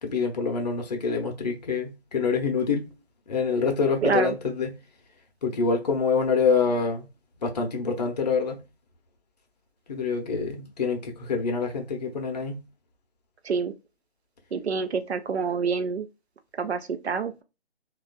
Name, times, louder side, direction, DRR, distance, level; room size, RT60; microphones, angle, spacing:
voice 1, 0.0-2.9 3.3-4.7 5.4-7.1 7.4-8.6 9.9-12.6, left 5 dB, 40° left, 0.7 m, -26 dB
voice 2, 4.0-4.3 13.4-13.7 14.5-16.1 16.6-17.4, right 5 dB, 80° right, 0.6 m, -27 dB
3.1 x 2.4 x 2.2 m
figure-of-eight pair, 145°, 32 cm